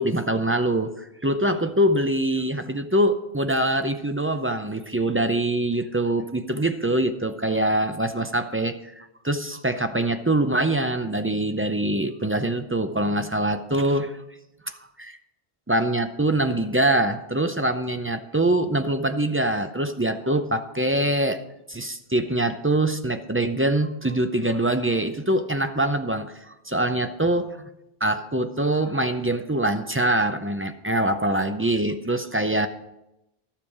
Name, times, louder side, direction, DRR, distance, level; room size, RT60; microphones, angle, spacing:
voice 1, 0.0-14.2 14.7-15.2 15.7-21.4 21.7-27.5 28.0-32.7, right 1 dB, 20° right, 7 dB, 0.4 m, -24 dB
12.0 x 7.3 x 4.9 m, 0.89 s
omnidirectional pair, 1.1 m